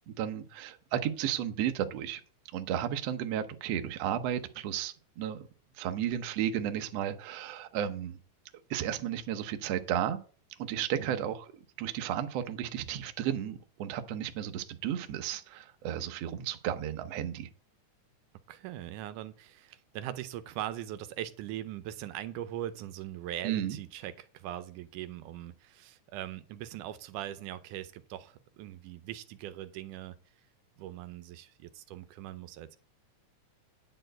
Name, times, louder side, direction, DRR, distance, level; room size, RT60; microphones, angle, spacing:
voice 1, 0.1-2.2 2.5-5.5 5.8-8.2 8.7-10.2 10.6-11.5 11.8-17.5 23.4-23.8, right 10 dB, 65° right, 1.8 m, -33 dB
voice 2, 18.5-30.2 30.8-32.8, right 12 dB, 85° right, 2.2 m, -41 dB
10.0 x 4.4 x 7.7 m
omnidirectional pair, 3.6 m